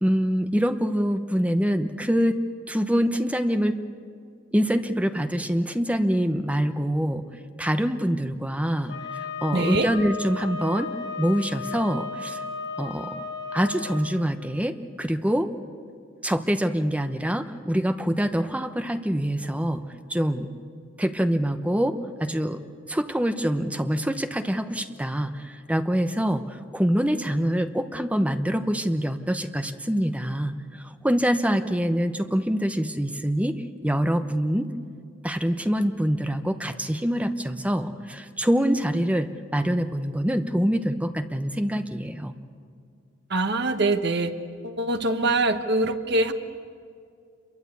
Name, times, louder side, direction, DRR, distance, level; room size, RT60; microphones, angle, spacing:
voice 1, 0.0-2.4 2.7-3.7 4.5-7.2 7.6-10.9 11.2-12.4 12.8-13.2 13.5-15.5 16.2-19.8 20.1-20.5 21.0-22.6 22.9-34.7 35.2-42.4, equal, 5° right, 8 dB, 0.9 m, -25 dB
Wind instrument woodwind instrument, 8.9-14.0, left 4 dB, 85° left, 4.7 m, -34 dB
voice 2, 9.5-9.9 43.3-44.3 44.6-46.3, right 2 dB, 55° right, 7 dB, 1.3 m, -24 dB
27.0 x 23.0 x 8.4 m, 2.3 s
head